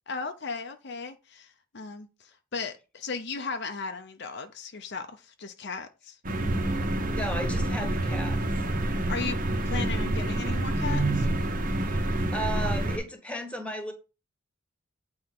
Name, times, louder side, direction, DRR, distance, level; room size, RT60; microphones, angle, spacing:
voice 1, 0.1-6.2 9.1-9.4 9.6-11.3, left 4 dB, 55° left, 0.8 m, -36 dB
sound 1, 6.2-13.0, right 1 dB, 40° right, 1.4 m, -27 dB
voice 2, 7.1-8.4 8.9-9.3 11.8-13.9, equal, 5° left, 1.6 m, -35 dB
8.7 x 4.3 x 6.0 m
head